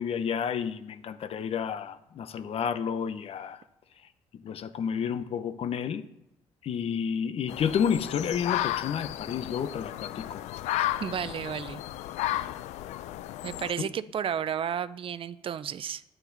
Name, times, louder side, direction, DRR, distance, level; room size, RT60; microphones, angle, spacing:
voice 1, 0.0-3.6 4.3-6.0 6.6-10.4 13.8-13.9, left 7 dB, 55° left, 12 dB, 0.8 m, -30 dB
sound 1, 7.5-13.7, left 14 dB, 75° left, 0.4 m, -33 dB
voice 2, 11.0-11.8 13.4-16.0, right 8 dB, 50° right, 16 dB, 0.5 m, -32 dB
9.1 x 8.9 x 3.9 m, 0.84 s
supercardioid pair, 60°, 12 cm